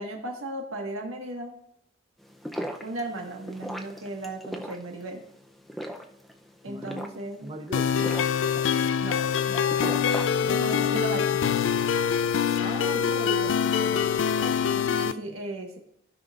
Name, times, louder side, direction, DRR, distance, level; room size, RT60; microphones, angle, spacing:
voice 1, 0.0-1.5 2.8-5.2 6.6-7.5 9.0-9.2 9.5-9.6 10.4-11.6 14.9-15.8, right 2 dB, 85° right, 1 dB, 1.4 m, -36 dB
sound 1, 2.2-11.0, equal, ahead, 0.5 m, -38 dB
voice 2, 6.7-7.1 7.4-7.9 12.6-15.4, right 1 dB, 25° right, 3 dB, 0.9 m, -40 dB
sound 2, 7.7-15.1, left 7 dB, 65° left, 0.3 m, -24 dB
15.5 x 5.5 x 2.4 m, 0.74 s
head